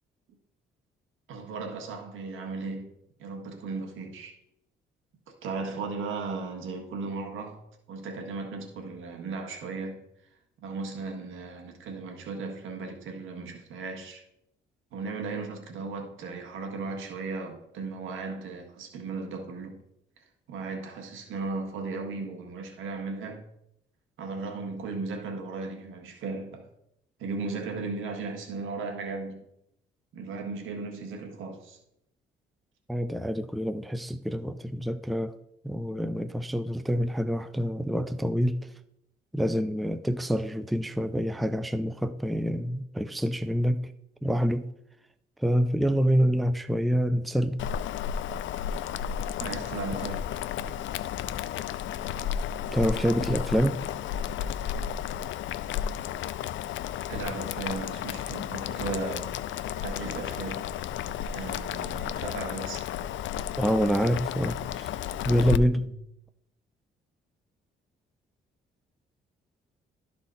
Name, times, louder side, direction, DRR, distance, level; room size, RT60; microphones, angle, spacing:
voice 1, 1.3-4.4 5.4-7.6 7.9-10.0 10.6-14.2 14.9-19.8 20.5-23.4 24.2-26.7 27.2-29.4 30.1-31.8 49.4-50.3 57.1-59.3 59.8-60.6 61.3-62.9 65.8-65.9, right 4 dB, 85° right, 1.6 m, -36 dB
voice 2, 32.9-35.3 35.6-38.6 39.3-43.9 44.2-44.7 45.4-47.6 52.7-53.8 63.6-64.9 65.2-65.8, equal, ahead, 0.4 m, -26 dB
Boiling, 47.6-65.6, left 9 dB, 70° left, 0.4 m, -33 dB
12.0 x 4.3 x 4.0 m
cardioid pair, 90°, 20 cm